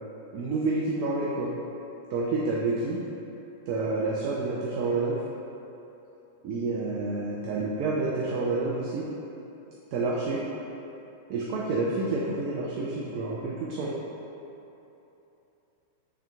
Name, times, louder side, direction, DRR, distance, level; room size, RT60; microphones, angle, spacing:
voice 1, 0.3-1.5 2.1-3.0 3.7-5.2 6.4-9.0 9.9-10.4 11.3-14.0, right 3 dB, 45° right, -4 dB, 0.4 m, -28 dB
3.4 x 2.8 x 3.4 m, 3.0 s
figure-of-eight pair, 90°, 0 cm